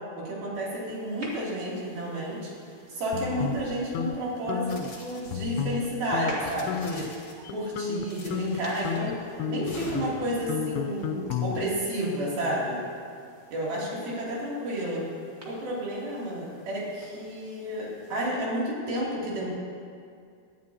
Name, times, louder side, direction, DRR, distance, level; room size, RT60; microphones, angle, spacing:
voice 1, 0.2-2.5 2.9-9.1 9.5-12.8 13.5-15.0 15.4-19.5, right 1 dB, 70° right, -6 dB, 4.5 m, -31 dB
sound 1, 0.9-18.2, equal, 30° right, 1.3 m, -49 dB
sound 2, 3.1-4.2 4.5-4.9 5.3-5.9 6.1-6.3 6.7-7.1 7.5-11.9, left 7 dB, 85° left, 2.6 m, -32 dB
sound 3, 4.7-5.7 6.3-7.5 8.1-9.1 9.7-10.3, left 3 dB, 45° left, 2.2 m, -44 dB
18.5 x 12.0 x 2.8 m, 2.3 s
omnidirectional pair, 4.5 m